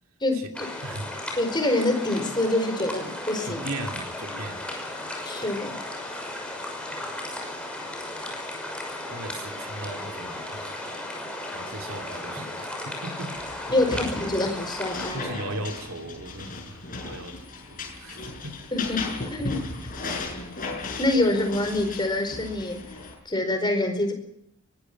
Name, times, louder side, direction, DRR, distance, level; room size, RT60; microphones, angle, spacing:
voice 1, 0.2-0.7 1.4-3.6 5.2-5.7 13.7-15.3 18.7-19.0 19.3-19.6 21.0-22.8 23.2-24.1, left 2 dB, 20° left, 6 dB, 4.7 m, -25 dB
sound 1, 0.5-15.1, left 1 dB, 5° left, 6.1 m, -35 dB
voice 2, 0.8-1.2 3.4-4.7 9.1-11.0 11.5-13.5 13.9-14.0 15.1-18.6, right 2 dB, 70° right, 4 dB, 2.9 m, -38 dB
sound 2, 13.3-23.2, left 3 dB, 40° left, 6.9 m, -36 dB
23.5 x 19.5 x 6.1 m, 0.75 s
head